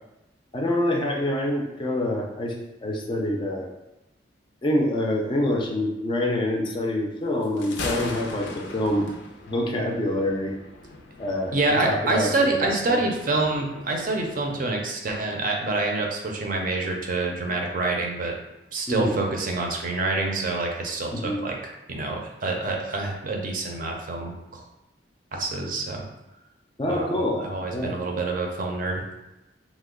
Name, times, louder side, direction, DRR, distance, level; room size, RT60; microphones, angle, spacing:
voice 1, 0.5-2.5 2.8-3.7 4.6-9.1 9.5-10.5 11.2-11.6 11.8-13.0 18.9-19.1 21.1-21.4 26.8-27.4 27.7-28.0, left 1 dB, 25° left, 1 dB, 0.4 m, -26 dB
Thunder, 7.4-14.7, left 3 dB, 90° left, 0.5 m, -39 dB
voice 2, 11.5-18.3 18.7-24.6 25.3-26.0 26.9-29.0, right 2 dB, 50° right, 1 dB, 0.5 m, -27 dB
3.0 x 2.1 x 3.6 m, 0.97 s
head